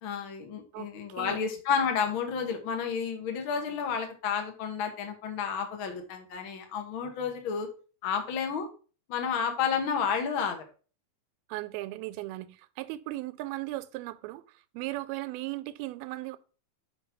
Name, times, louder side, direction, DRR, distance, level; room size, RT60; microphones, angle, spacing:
voice 1, 0.0-7.7 8.0-8.7 9.1-10.6, left 6 dB, 60° left, 1.4 m, -31 dB
voice 2, 0.7-1.5 11.5-16.4, right 18 dB, 85° right, 2.5 m, -37 dB
5.4 x 5.2 x 5.8 m
omnidirectional pair, 4.3 m